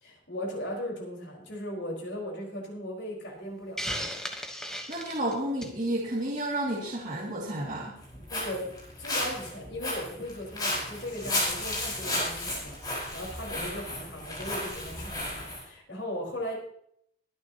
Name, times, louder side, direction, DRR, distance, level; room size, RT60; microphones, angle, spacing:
voice 1, 0.0-4.1 8.3-16.6, left 1 dB, 80° left, -1 dB, 4.6 m, -38 dB
Hiss, 3.8-5.8, equal, 5° left, 1.1 m, -35 dB
voice 2, 4.9-8.0, right 1 dB, 40° right, -6 dB, 2.5 m, -31 dB
Walk footsteps, 8.0-15.6, left 1 dB, 20° left, 4.6 m, -33 dB
22.5 x 9.7 x 2.9 m, 0.69 s
head